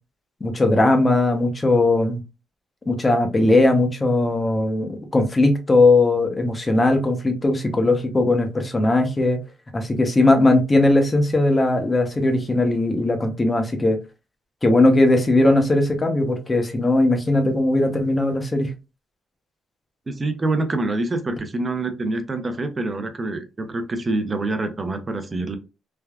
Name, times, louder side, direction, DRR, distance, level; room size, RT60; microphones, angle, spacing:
voice 1, 0.4-2.2 2.9-9.4 9.7-14.0 14.6-18.7, left 2 dB, 25° left, 0.7 m, -19 dB
voice 2, 20.1-25.6, right 2 dB, 30° right, 0.6 m, -26 dB
3.4 x 2.2 x 2.3 m
cardioid pair, 90°, 0 cm